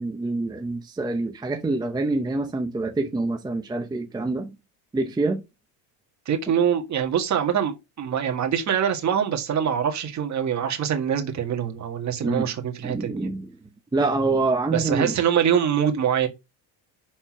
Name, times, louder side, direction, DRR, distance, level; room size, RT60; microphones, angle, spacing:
voice 1, 0.0-4.6 4.9-5.4 12.2-12.5 12.8-13.5 13.9-15.2, right 3 dB, 10° right, 0.7 m, -26 dB
voice 2, 6.3-13.3 14.7-16.3, right 8 dB, 40° right, 1.8 m, -24 dB
5.9 x 4.3 x 6.1 m
supercardioid pair, 110°, 43 cm